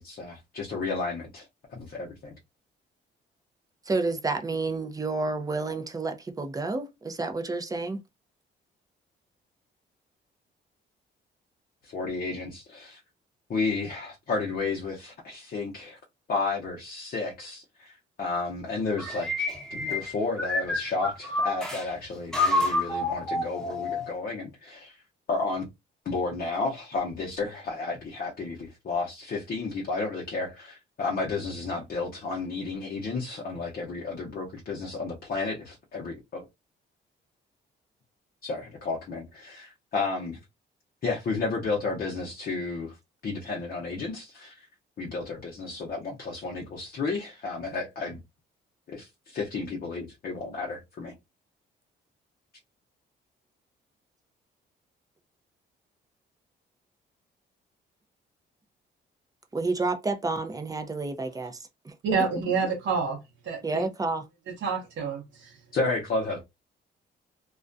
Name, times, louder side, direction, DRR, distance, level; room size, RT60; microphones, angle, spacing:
voice 1, 0.0-2.3 11.8-13.0 13.5-16.0 16.3-25.0 25.3-25.6 26.0-36.5 38.4-40.4 41.0-43.0 43.2-44.7 45.0-48.2 48.9-51.1 65.7-66.4, left 3 dB, 45° left, 0.7 m, -32 dB
voice 2, 3.9-8.0 59.5-61.6 61.8-61.9 63.6-64.2, right 3 dB, 20° right, 0.5 m, -30 dB
sound 1, 19.0-21.8 22.3-24.1, left 2 dB, 5° left, 1.0 m, -28 dB
voice 3, 62.0-63.9 64.5-65.6, right 5 dB, 70° right, 0.8 m, -28 dB
2.4 x 2.1 x 2.5 m
cardioid pair, 90°, 20 cm